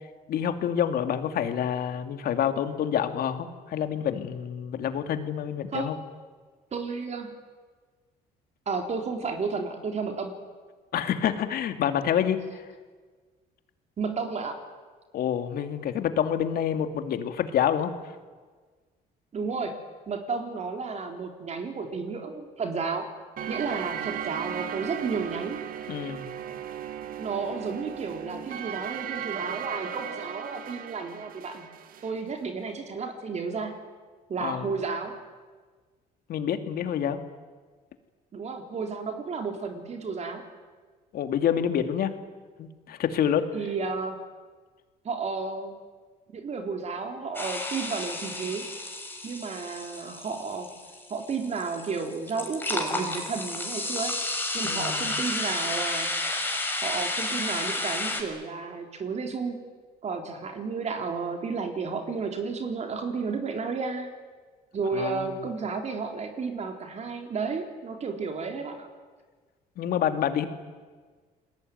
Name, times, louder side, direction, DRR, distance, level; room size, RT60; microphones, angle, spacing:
voice 1, 0.3-5.9 10.9-12.6 15.1-17.9 25.9-26.3 34.4-34.6 36.3-37.2 41.1-42.1 42.6-43.5 54.6-55.2 64.9-65.3 69.8-70.5, left 9 dB, 65° left, 8 dB, 2.6 m, -27 dB
voice 2, 6.7-7.3 8.7-10.3 14.0-14.6 19.3-19.7 20.1-23.1 23.5-25.6 27.2-31.7 32.0-33.7 34.3-35.2 38.3-40.4 43.5-44.2 45.0-45.8 46.3-48.6 49.2-50.7 51.1-54.1 54.5-56.1 56.8-59.6 60.0-64.1 64.7-68.9, right 4 dB, 40° right, 4 dB, 3.8 m, -32 dB
sound 1, 23.4-32.1, right 9 dB, 55° right, 2.2 m, -36 dB
sound 2, 47.3-58.2, left 2 dB, 10° left, 5.3 m, -32 dB
28.5 x 21.0 x 9.4 m, 1.4 s
cardioid pair, 110°, 17 cm